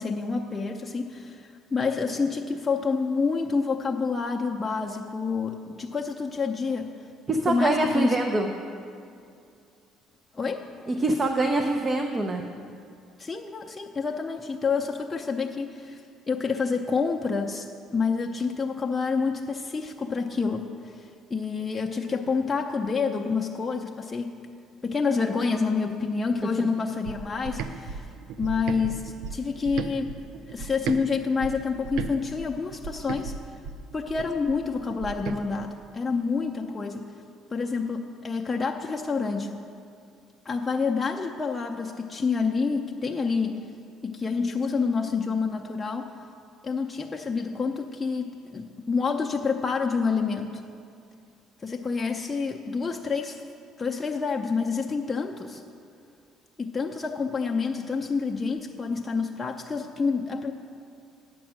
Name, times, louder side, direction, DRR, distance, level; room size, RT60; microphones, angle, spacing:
voice 1, 0.0-7.0 7.5-8.1 10.3-10.6 13.2-17.7 17.9-24.3 24.8-28.1 28.4-30.1 30.5-33.3 33.9-37.1 37.5-39.5 40.5-43.6 44.0-46.1 46.6-50.6 51.6-53.4 53.8-55.6 56.6-60.5, left 4 dB, 25° left, 0 dB, 0.5 m, -28 dB
voice 2, 7.3-8.5 10.9-12.4 26.6-26.7, right 2 dB, 35° right, 4 dB, 0.7 m, -24 dB
sound 1, 27.0-31.0 31.4-35.4, right 5 dB, 75° right, 0.4 m, -36 dB
8.8 x 6.1 x 6.2 m, 2.4 s
supercardioid pair, 75°, 0 cm